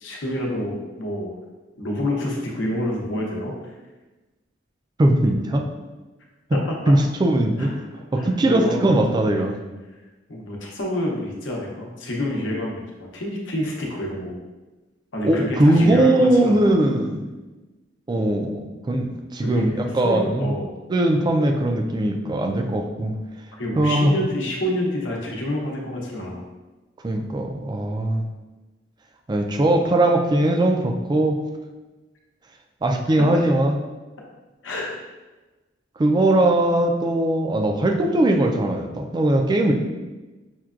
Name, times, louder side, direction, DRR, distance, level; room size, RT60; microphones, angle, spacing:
voice 1, 0.0-1.3 1.8-3.5 6.5-6.9 7.6-7.7 8.2-8.9 10.3-14.4 15.1-16.7 19.4-20.7 23.6-26.4 33.2-33.3 34.6-35.0, left 1 dB, 85° left, -1 dB, 0.8 m, -28 dB
voice 2, 5.0-5.6 6.9-7.7 8.1-9.5 15.2-17.3 18.1-20.6 20.9-23.2 23.7-24.2 27.0-28.2 29.3-31.4 32.8-33.8 36.0-39.7, right 1 dB, 25° right, 3 dB, 0.3 m, -20 dB
5.8 x 2.2 x 2.4 m, 1.2 s
head